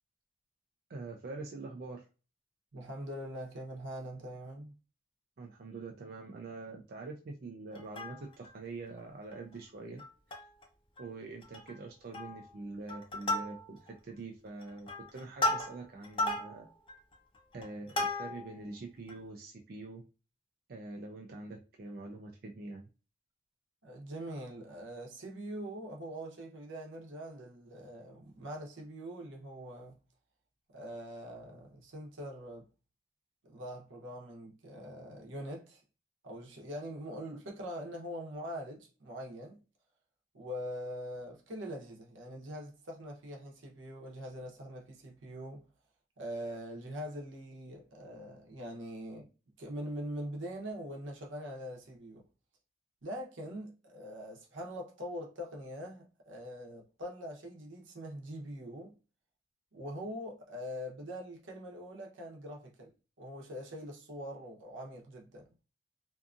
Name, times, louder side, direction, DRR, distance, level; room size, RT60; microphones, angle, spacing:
voice 1, 0.9-2.1 5.4-10.0 10.4-10.5 11.0-16.7 17.5-20.0 20.7-22.9, right 3 dB, 50° right, 0.4 m, -45 dB
voice 2, 2.7-4.7 23.8-30.0 30.7-32.6 33.4-35.8 36.2-39.6 40.3-45.6 46.2-49.3 49.6-52.2 53.0-58.9 59.7-62.9 63.2-65.5, equal, 80° right, 0.8 m, -43 dB
Plucked string instrument, 7.7-8.5 9.0-9.1 9.3-9.5 10.0-10.6 11.0-11.1 11.4-11.8 12.1-12.5 12.9-13.9 14.5-18.6 19.1-19.2, left 1 dB, 25° left, 0.5 m, -35 dB
2.7 x 2.4 x 2.4 m
head